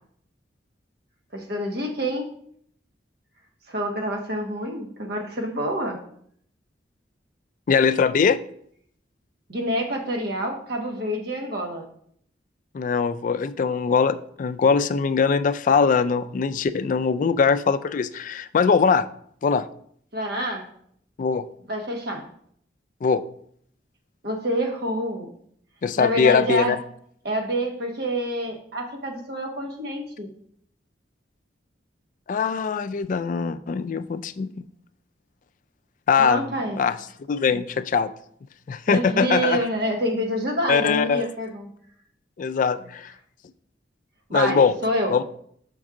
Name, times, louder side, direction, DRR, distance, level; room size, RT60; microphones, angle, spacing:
voice 1, 1.3-2.3 3.7-6.0 9.5-11.9 20.1-20.6 21.7-22.2 24.2-25.3 26.0-26.7 27.2-30.3 36.2-36.8 38.9-41.7 44.3-45.2, equal, 60° right, 2 dB, 1.2 m, -27 dB
voice 2, 7.7-8.4 12.7-19.1 19.4-19.7 21.2-21.5 23.0-23.2 25.8-26.8 32.3-34.6 36.1-36.5 36.7-37.0 37.3-38.1 38.7-39.6 40.7-41.2 42.4-43.1 44.3-44.7 45.1-45.2, left 5 dB, 45° left, 13 dB, 0.3 m, -21 dB
6.1 x 5.3 x 3.7 m, 0.65 s
head